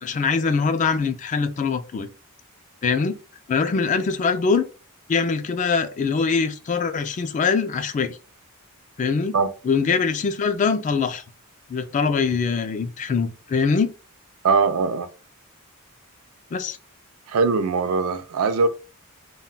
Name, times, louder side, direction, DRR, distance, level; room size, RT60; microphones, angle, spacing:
voice 1, 0.0-2.1 2.8-3.2 3.5-4.6 5.1-8.2 9.0-9.4 9.6-11.2 11.7-13.9 16.5-16.8, left 5 dB, 35° left, 0.3 m, -23 dB
voice 2, 14.4-15.1 17.3-18.7, right 4 dB, 70° right, 0.4 m, -21 dB
2.2 x 2.1 x 3.8 m
head